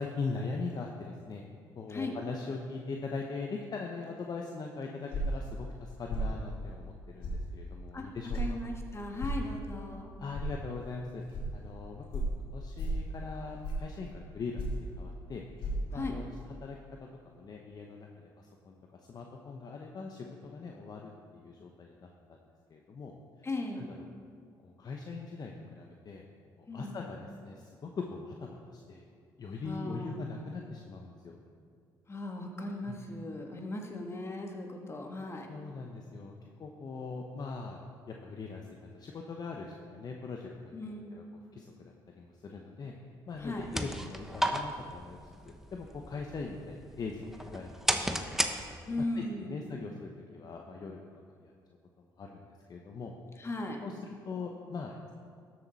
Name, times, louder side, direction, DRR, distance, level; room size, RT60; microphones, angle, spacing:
voice 1, 0.0-1.4 1.7-8.6 10.2-11.2 11.5-12.2 12.5-15.4 15.9-22.4 22.7-23.1 23.4-23.5 23.8-24.1 24.6-26.2 26.6-29.0 29.4-31.4 32.9-33.0 35.5-37.8 38.1-39.7 39.9-41.2 41.5-42.9 43.3-45.2 45.4-48.5 49.1-51.0 51.4-51.5 52.0-53.1 53.4-53.5 53.8-55.1, left 4 dB, 45° left, 1 dB, 0.9 m, -41 dB
sound 1, 5.1-5.4 6.1-6.3 7.2-7.4 8.3-8.5 9.2-9.4 10.3-10.5 11.3-11.4 12.1-12.3 12.8-13.0 13.6-13.9 14.6-14.8 15.6-15.7, right 1 dB, 70° left, 2.4 m, -33 dB
voice 2, 8.3-10.1 15.9-16.1 23.4-23.9 26.7-27.0 29.6-30.3 32.1-35.5 40.7-41.2 43.4-43.7 48.9-49.7 53.4-53.8, left 2 dB, 30° left, 2 dB, 1.7 m, -38 dB
sound 2, 43.4-49.1, right 1 dB, 5° right, 0.9 m, -35 dB
12.5 x 7.5 x 4.1 m, 2.3 s
supercardioid pair, 65°, 9 cm